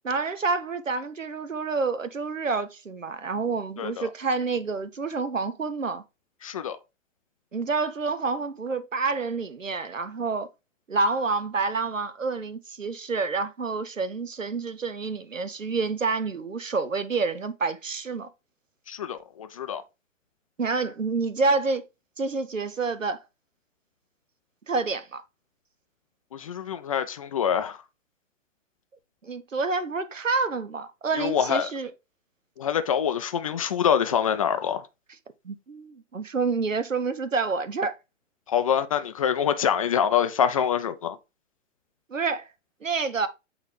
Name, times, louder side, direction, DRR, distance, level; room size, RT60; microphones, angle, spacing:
voice 1, 0.0-6.0 7.5-10.5 10.9-18.3 20.6-21.9 22.2-23.2 24.7-25.2 29.2-31.9 35.4-38.0 42.1-42.5 42.8-43.3, right 4 dB, 85° right, 0.8 m, -28 dB
voice 2, 3.8-4.1 6.4-6.8 18.9-19.8 26.3-27.8 31.2-31.7 32.6-34.8 38.5-41.2, left 8 dB, 30° left, 0.4 m, -25 dB
7.9 x 3.9 x 3.2 m
figure-of-eight pair, 115°, 38 cm